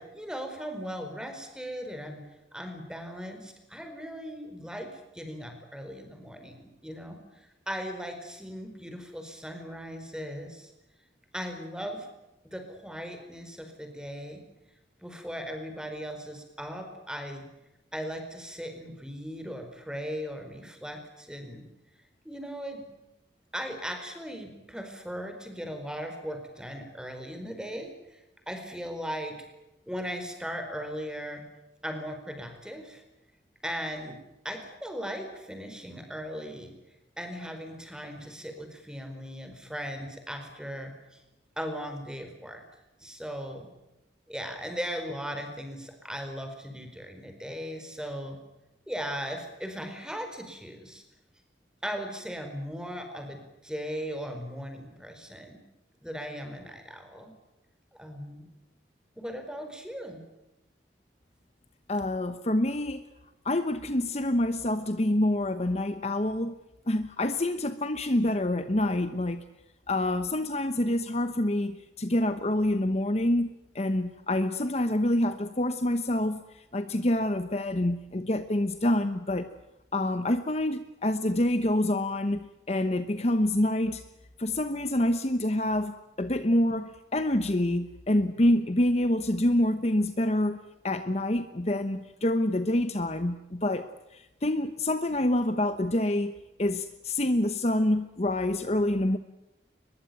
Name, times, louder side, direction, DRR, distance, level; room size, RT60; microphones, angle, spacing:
voice 1, 0.0-2.2 2.5-10.7 11.3-12.1 12.4-14.4 15.0-17.4 17.9-21.6 22.2-22.9 23.5-28.2 28.5-29.3 29.9-31.4 31.8-33.0 33.6-34.2 34.4-36.7 37.2-41.2 41.6-42.6 43.0-43.7 44.3-48.4 48.9-51.0 51.8-55.6 56.0-57.3 57.9-58.5 59.2-60.2, equal, 5° right, 5 dB, 4.5 m, -38 dB
voice 2, 61.9-63.0 63.4-66.6 66.9-69.4 69.9-73.5 73.7-76.4 76.7-79.5 79.9-84.0 84.4-90.6 90.8-93.9 94.1-96.3 96.6-99.2, left 1 dB, 35° left, 10 dB, 1.0 m, -27 dB
23.0 x 21.5 x 9.3 m, 0.94 s
head